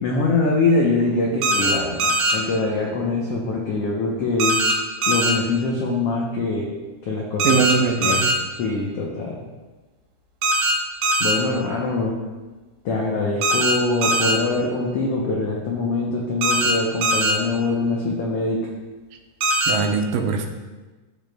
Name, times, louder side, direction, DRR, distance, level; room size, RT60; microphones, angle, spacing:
voice 1, 0.0-4.6 5.1-6.7 7.0-7.6 8.0-8.2 8.6-9.4 11.2-12.1 12.8-18.7, left 3 dB, 90° left, -2 dB, 1.3 m, -23 dB
sound 1, 1.4-1.7 2.0-2.3 4.4-4.7 5.0-5.3 7.4-7.7 8.0-8.3 10.4-10.7 11.0-11.3 13.4-13.7 14.0-14.3 16.4-16.7 17.0-17.3 19.4-19.7, right 2 dB, 65° right, 2.1 m, -20 dB
voice 2, 7.4-8.4 19.7-20.5, right 5 dB, 85° right, 4 dB, 2.3 m, -21 dB
13.5 x 5.1 x 2.2 m, 1.2 s
omnidirectional pair, 3.8 m